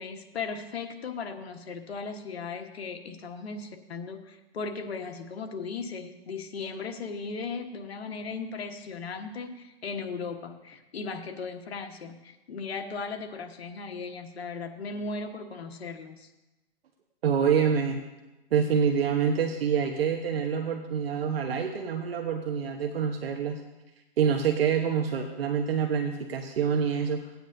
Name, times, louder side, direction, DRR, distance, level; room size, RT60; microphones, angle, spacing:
voice 1, 0.0-16.3, left 4 dB, 85° left, 5 dB, 1.4 m, -37 dB
voice 2, 17.2-18.0 18.5-23.6 24.2-27.3, right 7 dB, 70° right, 3 dB, 1.1 m, -26 dB
17.5 x 9.4 x 2.7 m, 1.1 s
hypercardioid pair, 150°, 30 cm